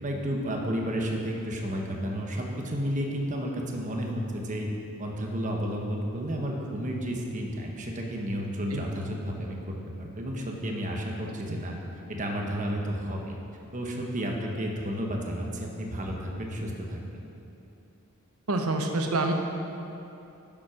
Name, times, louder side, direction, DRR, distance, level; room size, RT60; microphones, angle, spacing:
voice 1, 0.0-4.7 5.0-11.8 12.1-13.4 13.7-17.2, equal, 35° right, 0 dB, 1.2 m, -32 dB
voice 2, 18.5-19.3, right 2 dB, 80° right, 4 dB, 1.0 m, -27 dB
9.8 x 7.4 x 5.9 m, 2.8 s
head